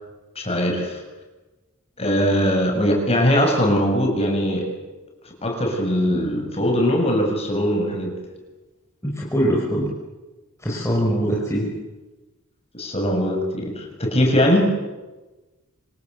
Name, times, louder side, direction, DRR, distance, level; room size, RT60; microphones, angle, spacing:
voice 1, 0.4-1.0 2.0-4.7 5.4-8.1 12.7-14.7, equal, 30° left, 2 dB, 7.3 m, -21 dB
voice 2, 9.0-9.9 10.6-11.7, equal, 15° left, -3 dB, 5.5 m, -22 dB
27.0 x 27.0 x 8.3 m, 1.1 s
head